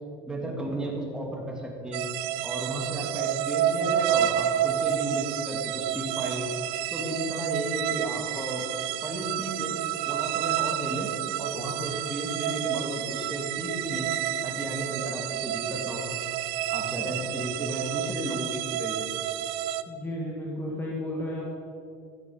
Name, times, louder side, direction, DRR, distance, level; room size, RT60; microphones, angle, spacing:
voice 1, 0.3-2.0 2.4-6.5 6.9-8.6 9.0-9.7 10.1-11.1 11.4-14.1 14.4-16.1 16.7-19.2, right 1 dB, 5° right, -2 dB, 2.3 m, -34 dB
sound 1, 1.9-19.8, right 11 dB, 90° right, 0.5 m, -30 dB
voice 2, 19.9-21.4, left 1 dB, 15° left, -3 dB, 1.6 m, -33 dB
13.0 x 8.1 x 5.5 m, 2.4 s
cardioid pair, 140°, 12 cm